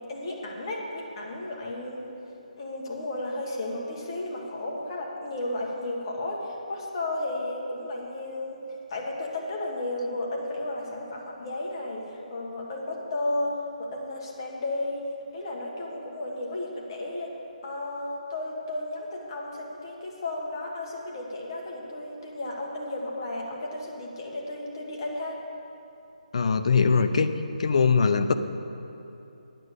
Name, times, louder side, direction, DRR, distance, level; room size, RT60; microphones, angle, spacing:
voice 1, 0.0-2.1 2.6-8.6 8.9-15.1 15.3-17.3 17.6-25.4, left 1 dB, 30° left, -2 dB, 1.6 m, -33 dB
voice 2, 26.3-27.3 27.6-28.3, left 5 dB, 50° left, 9 dB, 0.6 m, -21 dB
9.2 x 6.4 x 8.2 m, 2.9 s
hypercardioid pair, 165°, 4 cm